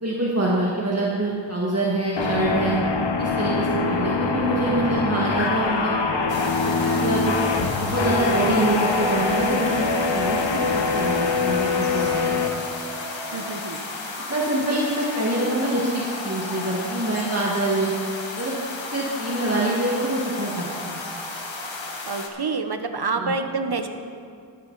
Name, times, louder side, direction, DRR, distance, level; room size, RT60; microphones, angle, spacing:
voice 1, 0.0-2.8 3.2-5.9 6.6-7.4 7.8-12.6 14.3-17.9 18.4-18.6 18.9-21.0 23.2-23.3, right 2 dB, 35° right, -5 dB, 1.7 m, -25 dB
sound 1, 2.2-12.5, left 4 dB, 70° left, 1.0 m, -24 dB
sound 2, 6.3-22.3, left 3 dB, 90° left, 1.2 m, -34 dB
sound 3, 7.1-13.6, left 1 dB, 10° right, 3.1 m, -39 dB
voice 2, 13.3-13.8 22.1-23.9, right 4 dB, 60° right, 7 dB, 1.0 m, -28 dB
12.0 x 12.0 x 4.0 m, 2.3 s
wide cardioid pair, 50°, 44 cm